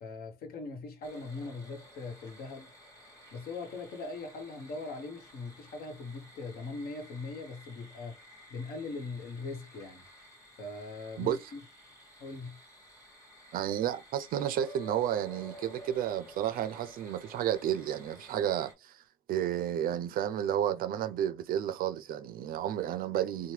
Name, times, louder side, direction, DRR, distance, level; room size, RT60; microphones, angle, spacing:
voice 1, 0.0-2.7 3.3-8.2 8.5-10.0 10.6-11.6 12.2-12.6, left 3 dB, 60° left, 0.8 m, -40 dB
sound 1, 1.0-18.7, equal, 20° left, 1.2 m, -53 dB
voice 2, 13.5-19.0 19.3-23.5, right 10 dB, 60° right, 0.4 m, -31 dB
2.8 x 2.1 x 3.1 m
cardioid pair, 110°, 17 cm